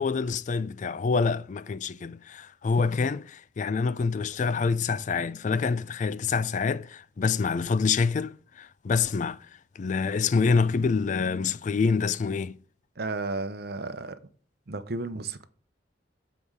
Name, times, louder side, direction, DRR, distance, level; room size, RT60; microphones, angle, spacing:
voice 1, 0.0-9.4 9.8-12.6, left 5 dB, 45° left, 0.3 m, -26 dB
voice 2, 13.0-14.2 14.7-15.5, right 3 dB, 60° right, 0.8 m, -33 dB
7.6 x 5.0 x 4.7 m
head